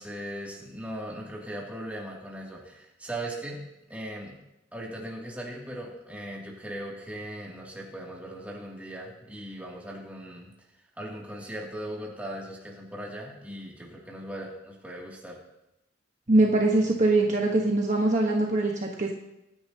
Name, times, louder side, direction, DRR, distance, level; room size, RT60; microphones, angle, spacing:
voice 1, 0.0-3.6 3.9-4.4 4.7-10.5 11.0-15.4, right 1 dB, 10° right, -3 dB, 2.6 m, -39 dB
voice 2, 16.3-19.1, right 2 dB, 40° right, 0 dB, 1.3 m, -22 dB
24.0 x 10.0 x 2.9 m, 0.90 s
head